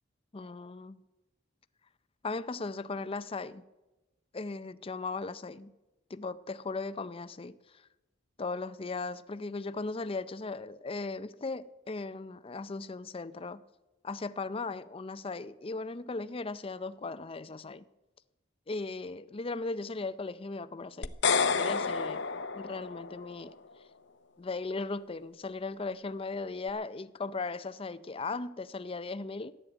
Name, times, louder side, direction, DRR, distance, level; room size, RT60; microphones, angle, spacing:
voice 1, 0.3-1.0 2.2-3.7 4.3-5.7 6.1-7.9 8.4-13.6 14.0-17.8 18.7-21.1 21.6-22.2 22.5-23.6 24.4-29.5, left 3 dB, 30° left, 0.5 m, -37 dB
sound 1, 21.0-23.3, left 5 dB, 65° left, 0.8 m, -29 dB
14.0 x 11.0 x 8.0 m
head